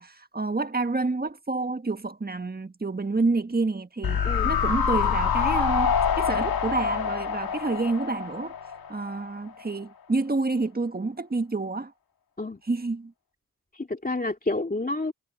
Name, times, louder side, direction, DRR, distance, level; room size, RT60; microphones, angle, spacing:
voice 1, 0.0-8.6 8.9-11.9 12.6-13.1, right 3 dB, 25° right, 1.6 m, -28 dB
sound 1, 4.0-9.3 9.6-9.7, left 7 dB, 85° left, 1.6 m, -26 dB
voice 2, 13.7-15.1, left 2 dB, 25° left, 2.7 m, -29 dB
cardioid pair, 45°, 35 cm